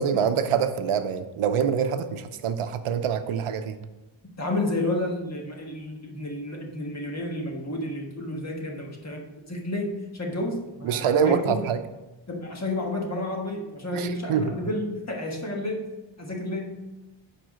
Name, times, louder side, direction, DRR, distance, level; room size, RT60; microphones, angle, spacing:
voice 1, 0.0-3.8 10.8-11.8 13.9-14.5, right 7 dB, 85° right, 9 dB, 0.7 m, -25 dB
voice 2, 4.4-11.6 12.3-15.9 16.2-16.8, left 1 dB, 30° left, 0 dB, 1.4 m, -31 dB
7.8 x 4.9 x 5.0 m, 1.1 s
wide cardioid pair, 120°, 49 cm